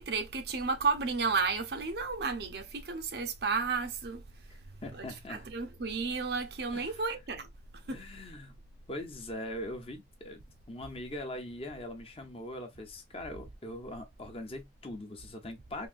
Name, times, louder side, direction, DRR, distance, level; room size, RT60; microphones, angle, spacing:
voice 1, 0.0-4.2 4.9-7.5 7.9-8.0, right 4 dB, 60° right, 0.6 m, -32 dB
voice 2, 4.5-5.5 6.7-7.0 7.9-8.6 8.9-10.4 10.7-15.9, left 1 dB, 30° left, 0.7 m, -41 dB
3.7 x 2.6 x 2.5 m
head